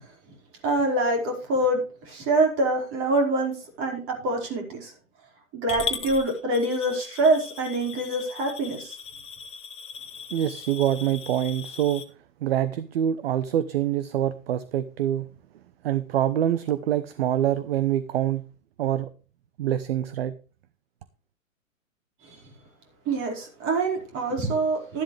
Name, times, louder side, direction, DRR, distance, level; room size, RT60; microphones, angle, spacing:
voice 1, 0.6-4.9 5.5-8.9 22.2-22.4 23.0-25.0, right 2 dB, 30° right, 4.9 m, -25 dB
Coin (dropping) / Glass, 5.7-12.0, left 6 dB, 15° left, 1.6 m, -38 dB
voice 2, 10.3-12.0 12.4-15.3 15.8-18.4 18.8-19.1 19.6-20.3, right 11 dB, 45° right, 0.9 m, -25 dB
13.0 x 11.5 x 3.3 m
figure-of-eight pair, 115°, 41 cm